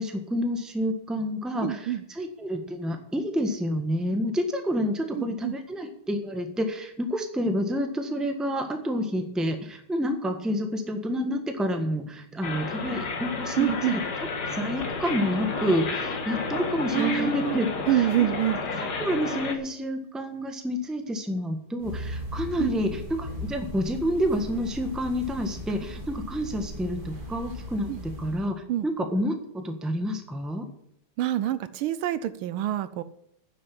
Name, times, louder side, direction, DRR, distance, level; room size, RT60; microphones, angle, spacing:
voice 1, 0.0-14.0 14.5-18.3 18.8-30.6, equal, ahead, 5 dB, 1.1 m, -29 dB
voice 2, 1.6-2.0 5.1-5.6 13.6-14.0 16.9-18.6 22.6-22.7 27.9-28.0 28.7-28.9 31.2-33.0, right 12 dB, 75° right, 14 dB, 1.4 m, -26 dB
sound 1, 12.4-19.6, left 4 dB, 50° left, 2.0 m, -31 dB
sound 2, 21.8-28.5, equal, 25° right, 2.4 m, -38 dB
9.9 x 7.7 x 8.6 m, 0.72 s
omnidirectional pair, 2.4 m